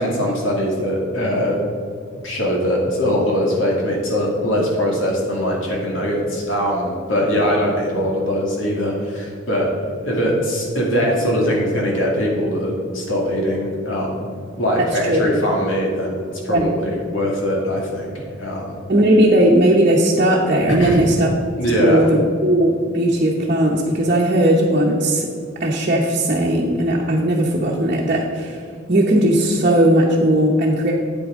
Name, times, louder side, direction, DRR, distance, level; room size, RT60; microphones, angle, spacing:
voice 1, 0.0-1.6 2.2-9.7 10.0-14.3 14.6-18.8 20.8-21.0 21.6-22.1, equal, 85° left, -2 dB, 2.3 m, -21 dB
voice 2, 18.9-25.3 25.6-28.6 28.9-30.9, right 1 dB, 45° right, -3 dB, 0.9 m, -17 dB
8.6 x 8.6 x 3.7 m, 2.3 s
head